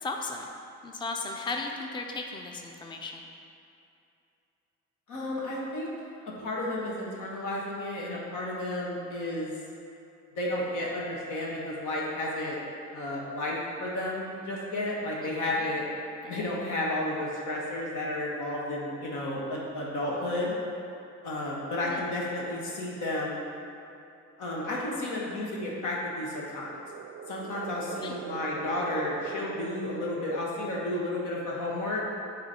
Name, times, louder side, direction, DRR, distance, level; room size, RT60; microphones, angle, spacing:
voice 1, 0.0-0.5 0.8-3.2 15.2-15.7 16.2-16.5 21.9-22.0 28.0-28.1, left 3 dB, 15° left, 2 dB, 0.5 m, -36 dB
voice 2, 5.1-5.9 6.4-9.5 10.3-12.6 12.9-15.8 16.3-20.5 21.2-23.4 24.4-26.8 27.3-32.0, left 1 dB, 85° left, -4 dB, 1.4 m, -32 dB
sound 1, 26.3-30.7, right 7 dB, 50° right, 0.4 m, -42 dB
7.8 x 3.1 x 4.3 m, 2.6 s
cardioid pair, 90°, 30 cm